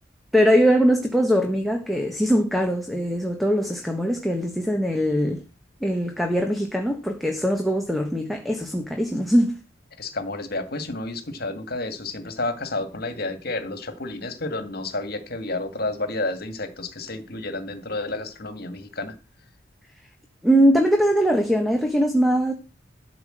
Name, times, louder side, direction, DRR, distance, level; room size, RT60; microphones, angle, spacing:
voice 1, 0.3-5.4 5.8-9.6 20.4-22.5, equal, ahead, 1.3 m, -21 dB
voice 2, 10.0-19.1, left 2 dB, 55° left, 2.0 m, -30 dB
12.5 x 5.1 x 7.8 m
head